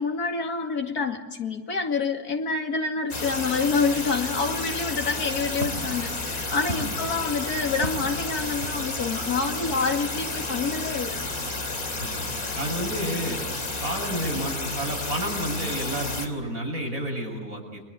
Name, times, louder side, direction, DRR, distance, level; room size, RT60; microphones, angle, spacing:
voice 1, 0.0-11.2, left 4 dB, 85° left, 4 dB, 2.7 m, -27 dB
sound 1, 3.1-16.3, left 2 dB, 65° left, 3.6 m, -31 dB
Walk footsteps, 4.8-9.3, right 1 dB, 45° right, 2.6 m, -38 dB
voice 2, 12.6-13.4 13.8-17.8, right 1 dB, 65° right, 0 dB, 7.8 m, -30 dB
30.0 x 24.0 x 8.3 m, 1.3 s
omnidirectional pair, 1.6 m